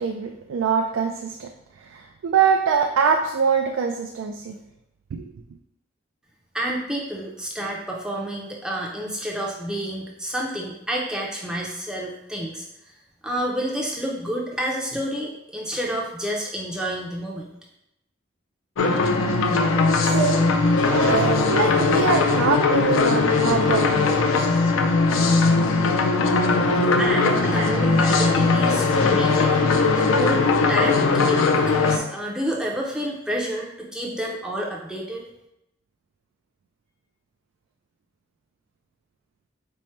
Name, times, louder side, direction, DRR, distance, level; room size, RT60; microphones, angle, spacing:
voice 1, 0.0-1.5 1.8-4.6 5.1-5.3 20.0-20.4 20.9-24.3 26.7-26.9 27.5-27.7, right 6 dB, 85° right, 4 dB, 0.3 m, -24 dB
voice 2, 6.5-12.7 13.2-17.5 26.3-26.4 27.0-35.2, right 1 dB, 5° right, -3 dB, 0.4 m, -29 dB
sound 1, 18.8-32.0, left 3 dB, 80° left, 0.4 m, -19 dB
4.4 x 2.1 x 4.2 m, 0.85 s
head